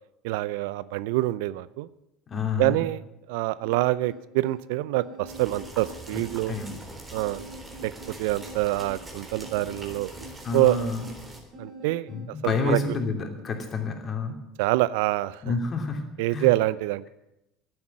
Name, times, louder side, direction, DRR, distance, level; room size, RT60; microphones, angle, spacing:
voice 1, 0.2-1.9 2.6-3.0 3.3-6.5 7.1-7.4 7.8-7.9 8.2-10.1 10.5-10.9 11.6-12.1 12.4-12.8 14.6-15.4 16.2-17.1, right 18 dB, 70° right, 18 dB, 0.5 m, -25 dB
voice 2, 2.3-2.8 6.1-6.2 6.5-6.7 10.4-11.1 12.1-14.4 15.4-16.0 16.3-16.5, left 4 dB, 35° left, 4 dB, 2.9 m, -29 dB
sound 1, 3.6-12.3, right 1 dB, 45° right, 4.9 m, -46 dB
sound 2, 5.3-11.4, right 1 dB, 20° right, 3.7 m, -43 dB
11.5 x 9.5 x 9.2 m, 0.87 s
hypercardioid pair, 70°, 0 cm